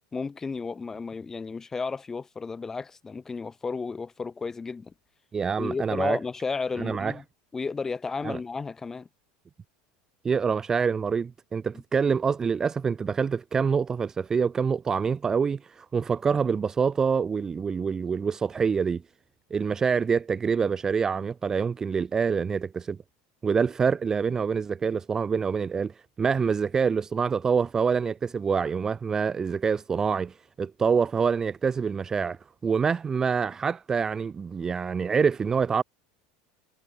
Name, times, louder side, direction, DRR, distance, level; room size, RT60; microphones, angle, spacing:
voice 1, 0.1-4.9 5.6-7.2 7.5-9.1, left 4 dB, 15° left, 2.1 m, -33 dB
voice 2, 5.3-6.2 6.8-7.1 8.2-8.4 10.2-19.0 19.5-23.0 23.4-25.9 26.2-35.8, right 6 dB, 20° right, 0.5 m, -26 dB
supercardioid pair, 135°, 3 cm